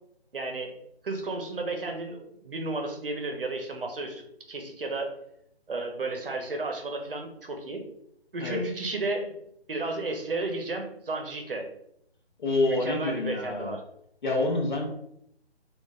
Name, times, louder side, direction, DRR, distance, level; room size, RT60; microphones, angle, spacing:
voice 1, 0.3-0.7 1.0-5.1 5.7-7.8 8.3-9.3 9.7-11.7 12.6-13.8, right 2 dB, 55° right, 3 dB, 0.7 m, -33 dB
voice 2, 12.4-13.7 14.2-14.9, left 2 dB, 45° left, 1 dB, 0.9 m, -27 dB
3.8 x 2.5 x 2.3 m, 0.74 s
figure-of-eight pair, 150°, 32 cm